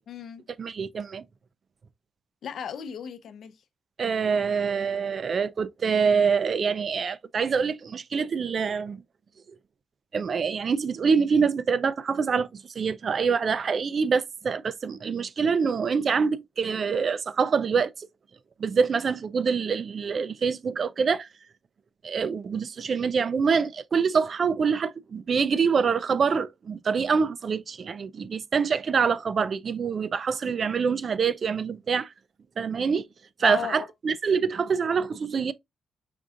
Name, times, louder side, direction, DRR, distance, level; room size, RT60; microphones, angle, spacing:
voice 1, 0.1-0.5 2.4-3.6 33.4-33.9, left 8 dB, 65° left, 0.6 m, -35 dB
voice 2, 0.6-1.2 4.0-9.0 10.1-18.1 18.6-21.3 22.0-32.1 32.6-33.1 33.4-35.5, right 5 dB, 45° right, 0.4 m, -25 dB
5.2 x 3.7 x 2.4 m
wide cardioid pair, 155°, 0 cm